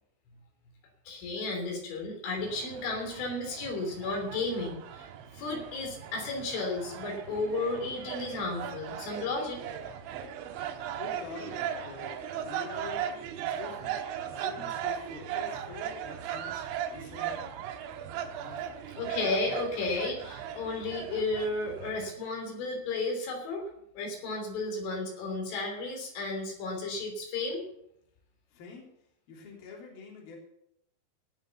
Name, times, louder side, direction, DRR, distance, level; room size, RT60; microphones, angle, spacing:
voice 1, 1.1-5.1 5.3-9.6 19.0-23.7 24.0-27.6, left 2 dB, 80° left, 1 dB, 5.7 m, -33 dB
sound 1, 2.4-22.1, right 9 dB, 80° right, 3.4 m, -38 dB
voice 2, 10.9-14.0 14.3-16.6 16.9-17.4 18.3-18.7 28.5-28.9 29.3-30.4, left 5 dB, 55° left, -1 dB, 4.9 m, -46 dB
18.5 x 7.4 x 6.9 m, 0.76 s
omnidirectional pair, 5.4 m